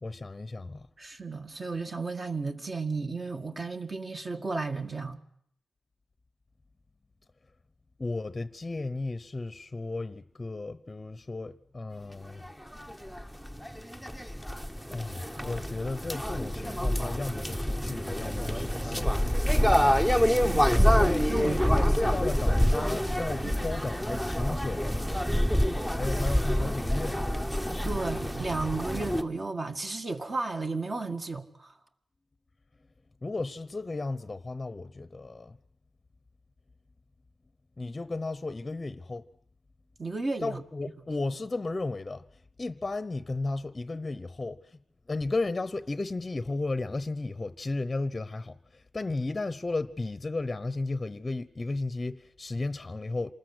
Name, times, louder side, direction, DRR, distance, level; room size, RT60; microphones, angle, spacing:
voice 1, 0.0-0.9 8.0-12.4 14.9-19.2 20.9-25.5 25.9-27.3 33.2-35.6 37.8-39.3 40.4-42.2 42.6-44.8 45.1-53.3, left 3 dB, 25° left, 0.9 m, -34 dB
voice 2, 1.0-5.2 20.4-22.2 23.4-23.7 26.6-26.8 27.8-31.7 40.0-40.6, right 3 dB, 35° right, 1.9 m, -34 dB
sound 1, 12.4-12.5 12.7-29.2, equal, 5° right, 1.0 m, -27 dB
27.5 x 20.0 x 8.0 m
wide cardioid pair, 150°, 0 cm